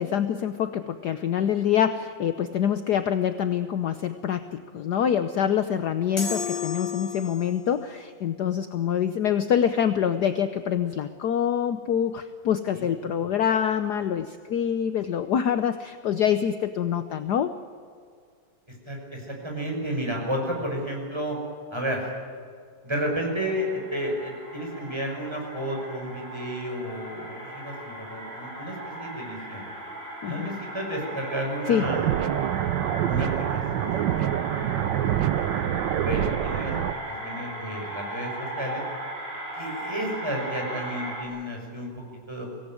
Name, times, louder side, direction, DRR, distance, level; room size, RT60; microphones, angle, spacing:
voice 1, 0.0-17.5 30.2-30.5 31.6-31.9, left 9 dB, 60° left, 10 dB, 1.3 m, -25 dB
sound 1, 6.2-7.7, left 6 dB, 45° left, 5.6 m, -32 dB
voice 2, 12.7-13.2 18.9-21.4 21.7-22.1 22.8-29.7 30.2-32.1 33.1-34.2 34.5-34.7 35.3-35.6 36.0-36.7 37.1-38.8 39.5-41.9 42.3-42.5, equal, 10° right, 0 dB, 6.1 m, -32 dB
sound 2, 23.1-41.2, right 1 dB, 30° right, 4.8 m, -37 dB
sound 3, 31.8-36.9, right 11 dB, 65° right, 1.3 m, -26 dB
24.5 x 18.0 x 9.2 m, 2.2 s
omnidirectional pair, 2.2 m